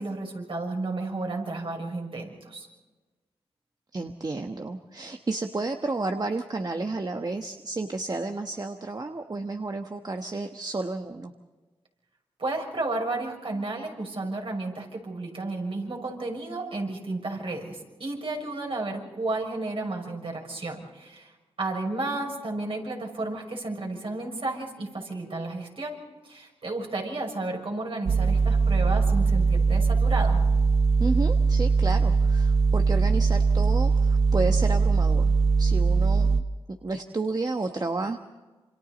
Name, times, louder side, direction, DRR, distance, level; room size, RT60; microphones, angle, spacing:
voice 1, 0.0-2.7 12.4-21.3 21.6-26.0 26.2-30.4, right 2 dB, 60° right, 1 dB, 6.4 m, -32 dB
voice 2, 3.9-11.3 31.0-35.3 35.6-36.4 36.7-38.2, right 3 dB, 40° right, 5 dB, 1.2 m, -31 dB
sound 1, 28.1-36.4, right 4 dB, 75° right, 0.7 m, -21 dB
28.0 x 25.5 x 4.1 m, 1.2 s
cardioid pair, 45°, 10 cm